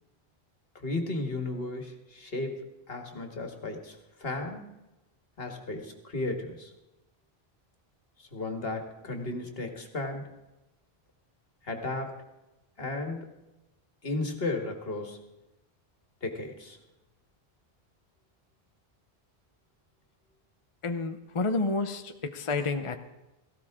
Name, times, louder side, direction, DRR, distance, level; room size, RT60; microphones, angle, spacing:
voice 1, 0.8-4.7 5.4-6.7 8.2-10.3 11.6-12.2 12.8-13.3 14.0-15.2 16.2-16.8, left 2 dB, 65° left, 4 dB, 2.1 m, -34 dB
voice 2, 20.8-23.0, left 3 dB, 35° left, 7 dB, 0.8 m, -30 dB
17.5 x 15.5 x 3.7 m, 0.99 s
omnidirectional pair, 1.0 m